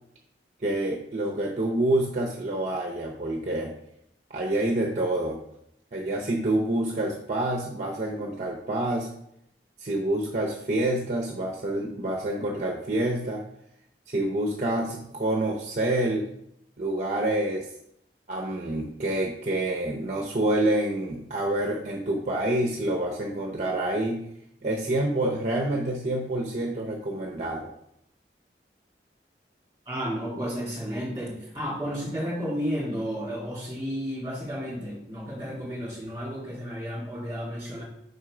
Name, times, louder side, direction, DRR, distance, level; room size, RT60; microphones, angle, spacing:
voice 1, 0.6-3.8 4.3-5.4 5.9-9.1 9.8-13.4 14.1-16.3 16.8-17.7 18.3-24.3 24.6-27.7, right 1 dB, 40° right, 0 dB, 0.7 m, -27 dB
voice 2, 29.9-37.8, equal, 15° right, -5 dB, 2.4 m, -32 dB
5.5 x 4.4 x 4.9 m, 0.76 s
head